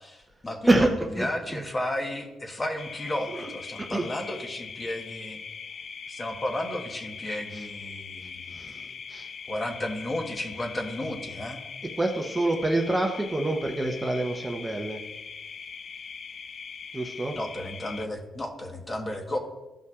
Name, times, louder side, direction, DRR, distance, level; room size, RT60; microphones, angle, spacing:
voice 1, 0.0-5.4 6.1-9.0 9.5-11.6 17.4-19.4, left 1 dB, 20° left, 3 dB, 1.1 m, -33 dB
voice 2, 1.2-1.6 3.3-3.5 3.8-4.1 7.5-7.6 8.5-8.8 9.1-9.3 12.0-15.0 16.9-17.4, right 2 dB, 15° right, 2 dB, 0.8 m, -26 dB
sound 1, 2.8-18.1, left 6 dB, 45° left, 0.4 m, -41 dB
14.0 x 5.5 x 2.4 m, 1.1 s
cardioid pair, 115°, 0 cm